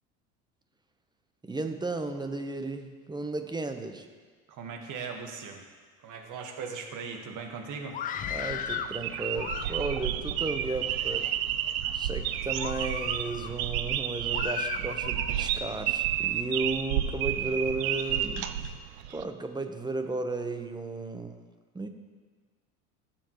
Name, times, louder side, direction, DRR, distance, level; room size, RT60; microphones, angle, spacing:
voice 1, 1.4-4.1 8.3-11.3 11.9-18.5 19.1-21.4 21.7-21.9, right 3 dB, 10° right, 6 dB, 1.0 m, -34 dB
voice 2, 4.5-5.6 6.0-8.0, right 5 dB, 45° right, 3 dB, 1.7 m, -39 dB
Screaming, 7.9-9.0 9.3-10.1 10.8-11.3 11.9-12.0 12.6-13.5 14.3-15.4, left 9 dB, 20° left, 0.3 m, -36 dB
sound 1, 8.3-19.2, right 10 dB, 70° right, 0.8 m, -31 dB
18.0 x 7.3 x 3.1 m, 1.5 s
hypercardioid pair, 80°, 43 cm